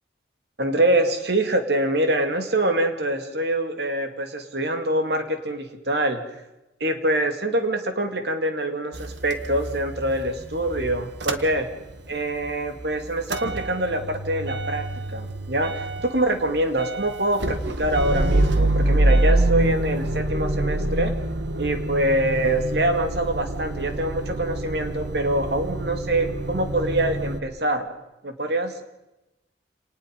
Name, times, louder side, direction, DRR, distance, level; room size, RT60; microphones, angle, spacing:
voice 1, 0.6-6.2 6.8-11.7 12.1-14.8 15.1-21.1 21.6-27.9 28.2-28.8, right 1 dB, 65° right, 6 dB, 2.6 m, -25 dB
Motor vehicle (road) / Engine starting / Idling, 8.9-12.1 12.4-27.4, right 1 dB, 80° right, 1.7 m, -26 dB
27.5 x 19.5 x 5.4 m, 0.95 s
head